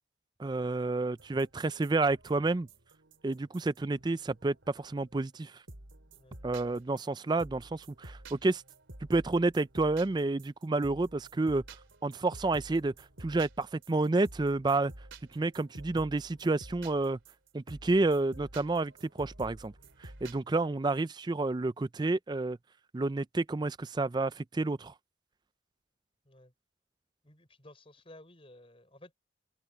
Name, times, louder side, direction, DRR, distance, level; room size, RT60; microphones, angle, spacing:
voice 1, 0.4-2.7 3.2-5.6 6.4-8.6 9.1-11.6 12.0-12.9 13.2-14.9 15.3-17.2 17.5-19.7 20.0-22.6 22.9-24.9, right 2 dB, 20° right, 0.4 m, -30 dB
sound 1, 1.2-5.1 5.7-20.4, right 2 dB, 80° right, 2.9 m, -51 dB
voice 2, 27.2-29.1, left 1 dB, 30° left, 5.8 m, -55 dB
head